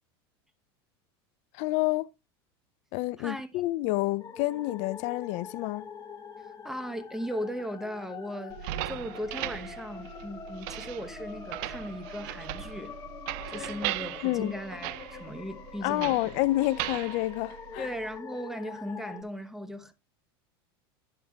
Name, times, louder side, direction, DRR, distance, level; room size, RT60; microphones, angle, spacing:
voice 1, 1.5-2.1 2.9-5.9 14.2-14.5 15.8-17.9, left 18 dB, 60° left, 0.4 m, -29 dB
sound 1, 4.2-19.2, left 6 dB, 30° left, 1.4 m, -45 dB
voice 2, 6.4-12.9 13.5-16.2 17.8-19.9, equal, 5° right, 0.9 m, -37 dB
sound 2, 8.5-18.2, right 17 dB, 60° right, 0.4 m, -38 dB
11.0 x 8.7 x 2.3 m
hypercardioid pair, 100°, 13 cm